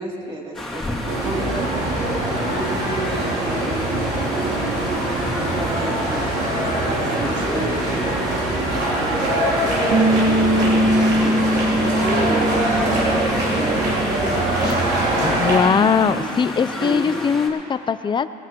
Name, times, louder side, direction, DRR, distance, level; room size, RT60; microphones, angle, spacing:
voice 1, 0.0-2.1 2.4-4.9 5.3-10.7 11.2-14.7 15.7-16.5 16.8-17.1, right 1 dB, 30° right, -3 dB, 2.9 m, -32 dB
sound 1, 0.5-17.5, left 1 dB, ahead, 2.7 m, -32 dB
sound 2, 1.1-15.6, right 1 dB, 90° right, 3.0 m, -23 dB
sound 3, 9.9-14.5 14.7-16.2, right 1 dB, 60° right, 1.2 m, -23 dB
voice 2, 15.2-18.3, left 6 dB, 30° left, 14 dB, 0.4 m, -20 dB
19.5 x 16.0 x 3.0 m, 2.6 s
cardioid pair, 110°, 17 cm